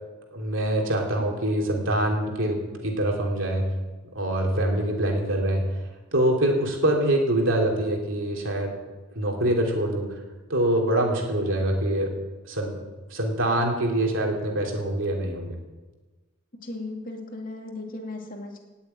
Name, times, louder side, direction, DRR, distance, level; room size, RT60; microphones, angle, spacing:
voice 1, 0.3-3.7 4.1-5.6 6.1-8.7 9.1-10.1 10.5-12.1 12.5-12.7 13.1-15.5, right 1 dB, 65° right, 0 dB, 3.2 m, -24 dB
voice 2, 16.6-18.6, left 2 dB, 40° left, 1 dB, 2.5 m, -36 dB
17.5 x 7.3 x 9.1 m, 1.2 s
head